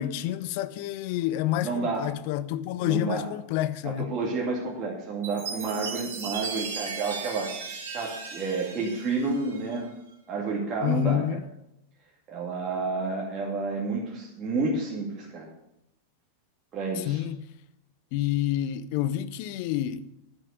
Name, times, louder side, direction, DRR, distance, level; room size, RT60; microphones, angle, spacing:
voice 1, 0.0-4.1 10.8-11.4 17.0-17.4 18.1-20.1, left 12 dB, 45° left, 0.6 m, -28 dB
voice 2, 1.6-2.0 2.8-3.3 3.8-7.5 7.9-9.9 10.3-11.2 12.3-15.5 16.7-17.2, right 3 dB, 30° right, 2.4 m, -30 dB
Chime, 5.2-9.8, right 5 dB, 60° right, 2.7 m, -37 dB
11.0 x 7.6 x 6.7 m
figure-of-eight pair, 90°, 0 cm